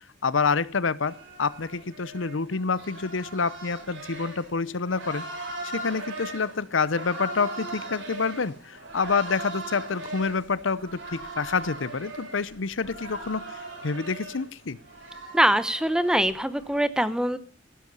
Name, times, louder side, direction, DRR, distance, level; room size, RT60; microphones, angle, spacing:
voice 1, 0.0-14.8, left 4 dB, 85° left, 18 dB, 0.8 m, -28 dB
sound 1, 1.0-16.8, right 2 dB, 75° right, 6.4 m, -40 dB
voice 2, 15.3-17.4, right 1 dB, 5° right, 15 dB, 0.8 m, -23 dB
16.0 x 12.0 x 5.5 m, 0.37 s
head